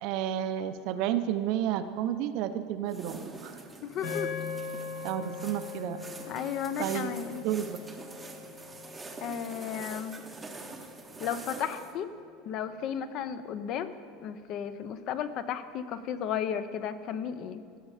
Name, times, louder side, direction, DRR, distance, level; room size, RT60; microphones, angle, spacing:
voice 1, 0.0-3.5 5.0-6.0 6.8-7.8, right 10 dB, 50° right, 10 dB, 0.5 m, -31 dB
sound 1, 2.9-11.9, right 3 dB, 10° right, 0.7 m, -45 dB
voice 2, 3.8-4.5 6.3-7.4 9.2-10.2 11.2-12.1 12.5-13.9 14.2-17.6, left 8 dB, 40° left, 12 dB, 0.5 m, -34 dB
sound 2, 4.0-12.4, left 6 dB, 85° left, 1.8 m, -42 dB
15.5 x 6.5 x 4.9 m, 2.3 s
supercardioid pair, 170°, 0 cm